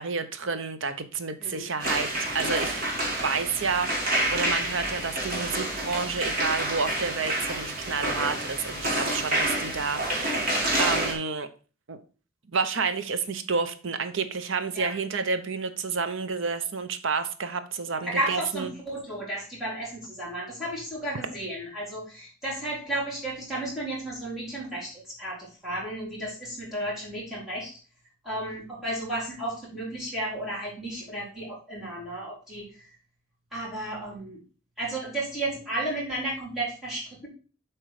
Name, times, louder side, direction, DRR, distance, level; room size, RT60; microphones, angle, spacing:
voice 1, 0.0-2.8 3.2-10.5 10.8-11.5 11.9-12.0 12.5-18.7, right 4 dB, 65° right, 10 dB, 0.8 m, -30 dB
sound 1, 1.8-11.1, right 1 dB, 45° right, 2.5 m, -28 dB
voice 2, 18.0-27.7 28.2-32.9 33.5-34.4 34.8-37.3, right 1 dB, ahead, -7 dB, 4.0 m, -33 dB
7.7 x 4.5 x 4.9 m, 0.37 s
head